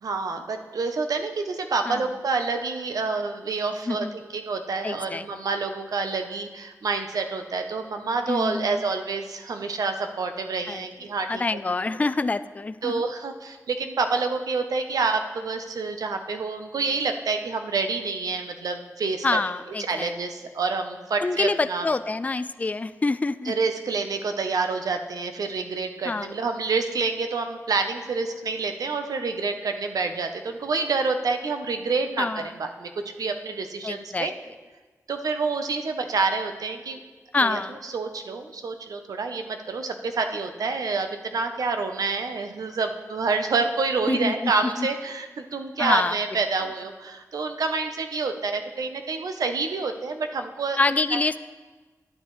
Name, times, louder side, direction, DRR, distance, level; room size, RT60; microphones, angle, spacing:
voice 1, 0.0-11.4 12.8-19.4 19.9-21.9 23.5-32.9 33.2-34.3 35.1-37.0 37.4-50.8 51.1-51.4, right 4 dB, 80° right, 6 dB, 0.8 m, -28 dB
voice 2, 3.9-4.2 4.8-5.2 8.3-8.8 10.7-10.8 11.3-13.0 19.2-20.1 21.2-23.5 26.1-26.3 32.2-32.5 33.8-34.3 37.3-37.8 44.1-44.5 44.8-44.9 45.8-46.2 50.8-51.4, left 3 dB, 25° left, 13 dB, 0.3 m, -26 dB
11.5 x 9.7 x 3.2 m, 1.3 s
wide cardioid pair, 80°, 6 cm